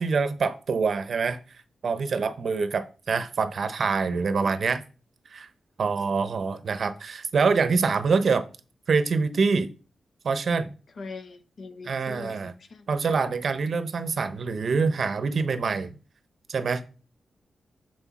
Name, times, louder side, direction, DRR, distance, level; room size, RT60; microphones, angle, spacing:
voice 1, 0.0-1.4 1.8-4.8 5.3-5.5 5.8-8.5 8.9-9.7 10.2-10.7 11.8-12.5 12.9-16.0 16.5-16.9, right 4 dB, 50° right, 0.7 m, -25 dB
voice 2, 11.0-12.9, left 4 dB, 50° left, 0.7 m, -41 dB
6.4 x 6.1 x 4.1 m
wide cardioid pair, 150°, 0 cm